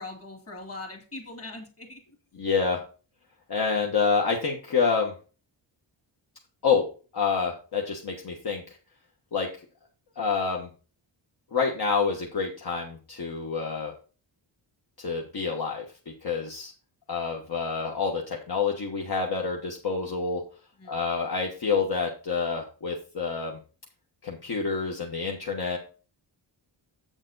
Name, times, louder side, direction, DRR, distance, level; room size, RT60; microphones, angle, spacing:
voice 1, 0.0-2.0 20.8-21.1, left 2 dB, 30° left, 3 dB, 2.6 m, -41 dB
voice 2, 2.4-2.8 3.5-5.1 6.6-6.9 7.1-8.6 9.3-9.5 10.2-10.7 11.5-13.9 15.0-15.8 16.2-16.7 17.1-20.4 20.9-23.6 24.2-25.8, left 5 dB, 55° left, 0 dB, 1.5 m, -27 dB
7.9 x 7.1 x 4.0 m, 0.35 s
wide cardioid pair, 155°, 46 cm